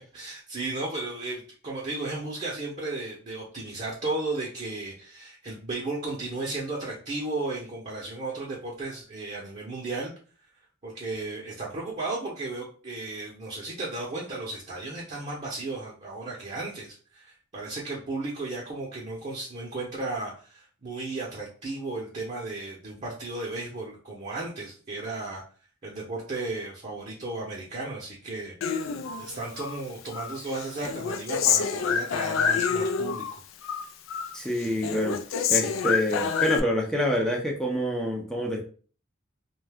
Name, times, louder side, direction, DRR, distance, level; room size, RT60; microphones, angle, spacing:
voice 1, 0.1-10.1 10.8-25.4 25.8-28.5 29.2-33.4, right 2 dB, 35° right, -3 dB, 0.7 m, -34 dB
Human voice, 28.6-29.8 30.1-33.3 33.6-34.4 34.6-36.6, left 7 dB, 75° left, 0.3 m, -27 dB
voice 2, 34.3-35.2 35.5-38.6, equal, 5° left, 0 dB, 0.5 m, -27 dB
2.6 x 2.3 x 3.4 m, 0.40 s
head